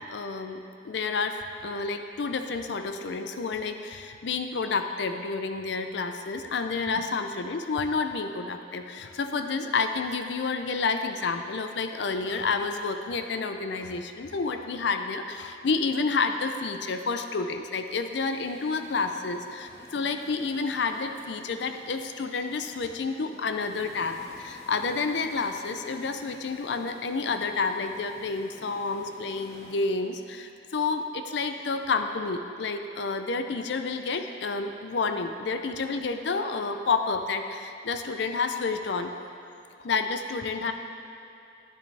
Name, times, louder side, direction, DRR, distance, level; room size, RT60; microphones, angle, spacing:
voice 1, 0.1-39.1 39.8-40.7, left 4 dB, 70° left, 7 dB, 0.5 m, -30 dB
sound 1, 18.0-29.9, equal, 15° left, 1.1 m, -51 dB
10.5 x 10.0 x 3.4 m, 2.7 s
head